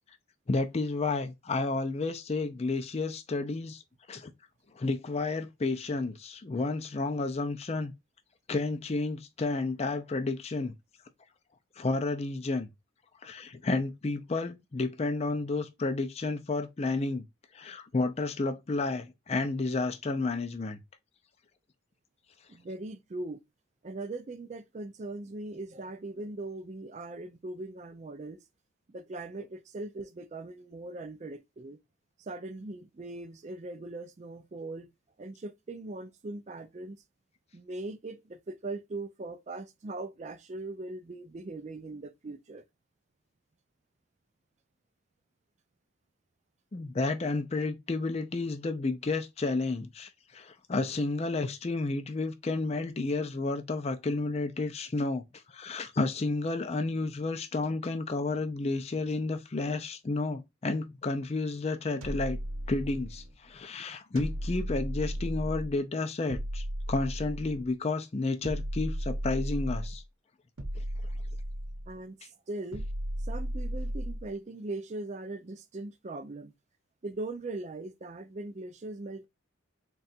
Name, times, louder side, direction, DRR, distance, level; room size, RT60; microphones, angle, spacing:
voice 1, 0.5-3.8 4.1-4.3 4.8-7.9 8.5-10.7 11.8-12.7 13.2-17.2 17.5-20.8 46.7-55.2 55.5-62.4 62.7-70.0 70.8-70.9, left 3 dB, 30° left, 0.4 m, -31 dB
voice 2, 22.5-23.4 23.8-28.4 28.9-31.8 32.2-34.9 35.2-37.0 37.5-42.6 71.9-72.9 73.2-76.5 77.0-79.3, right 2 dB, 35° right, 0.4 m, -40 dB
sound 1, 62.0-63.3 64.2-65.8 66.3-67.7 68.4-70.0 70.6-72.0 72.7-74.3, equal, 85° right, 0.8 m, -35 dB
3.7 x 2.3 x 4.1 m
head